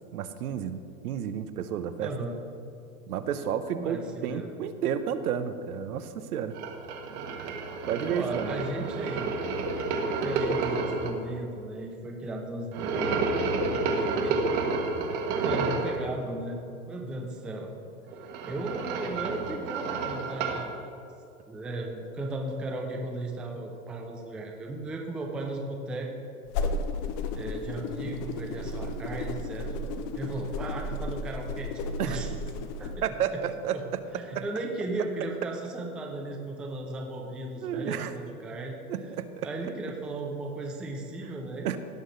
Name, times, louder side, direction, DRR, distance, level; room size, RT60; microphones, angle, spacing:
voice 1, 0.1-2.1 3.1-6.5 7.9-8.5 32.0-32.2 33.0-33.8 34.3-34.4 37.6-38.1 38.9-39.5 41.6-41.8, right 8 dB, 75° right, 10 dB, 0.9 m, -31 dB
voice 2, 2.0-2.4 3.7-4.5 8.1-9.3 10.2-13.2 13.5-14.4 15.4-16.6 16.9-17.7 18.5-20.9 21.5-26.1 27.3-29.7 30.1-32.3 32.8-32.9 33.3-33.4 33.7-33.8 34.1-38.7 39.4-41.8, right 2 dB, ahead, 0 dB, 0.3 m, -36 dB
sound 1, 6.5-11.1 12.7-16.0 18.1-20.7, right 3 dB, 50° right, 1.6 m, -30 dB
sound 2, 26.5-33.0, left 2 dB, 40° left, 0.9 m, -33 dB
17.0 x 6.4 x 3.9 m, 2.5 s
hypercardioid pair, 125°, 45 cm